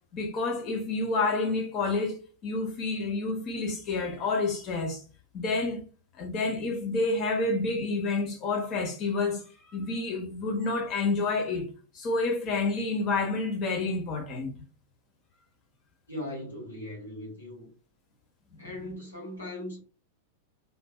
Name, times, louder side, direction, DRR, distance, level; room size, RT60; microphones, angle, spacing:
voice 1, 0.1-5.0 5.3-5.8 6.2-14.5 18.6-18.7, left 3 dB, 35° left, 0.8 m, -29 dB
voice 2, 16.1-17.7 18.6-19.8, left 1 dB, 80° left, 0.9 m, -39 dB
2.6 x 2.3 x 2.2 m
figure-of-eight pair, 90°, 0 cm